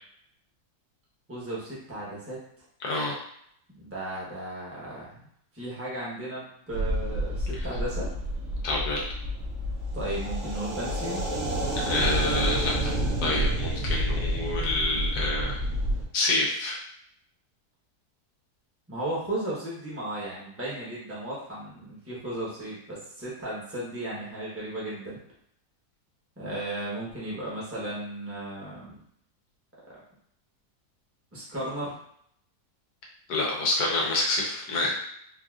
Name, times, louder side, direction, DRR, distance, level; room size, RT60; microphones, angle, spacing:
voice 1, 1.3-2.4 3.7-5.2 5.5-8.1 9.9-11.2 18.9-25.2 26.4-28.9 29.9-30.0 31.3-32.0, right 1 dB, 10° right, -7 dB, 0.9 m, -35 dB
voice 2, 2.8-3.2 8.6-9.1 11.7-12.9 13.2-15.6 16.1-16.8 33.3-34.9, left 2 dB, 80° left, -1 dB, 1.4 m, -27 dB
sound 1, 6.7-16.0, right 1 dB, 60° right, 0.9 m, -29 dB
3.9 x 2.6 x 2.4 m, 0.69 s
omnidirectional pair, 1.7 m